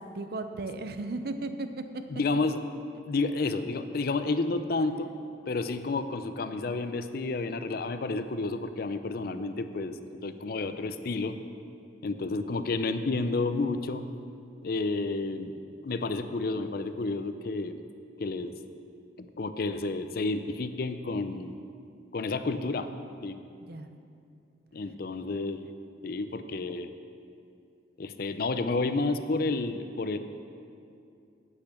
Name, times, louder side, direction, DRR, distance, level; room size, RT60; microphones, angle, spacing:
voice 1, 0.0-2.0 4.9-5.1 23.6-23.9, right 2 dB, 55° right, 8 dB, 0.6 m, -36 dB
voice 2, 2.1-2.6 3.0-5.1 5.5-11.4 12.0-14.0 14.6-15.6 15.8-17.8 18.2-18.6 19.2-21.6 22.1-22.9 23.2-23.4 24.7-25.6 26.0-26.9 28.0-30.2, left 3 dB, 55° left, 10 dB, 0.5 m, -30 dB
8.6 x 8.2 x 6.7 m, 2.5 s
head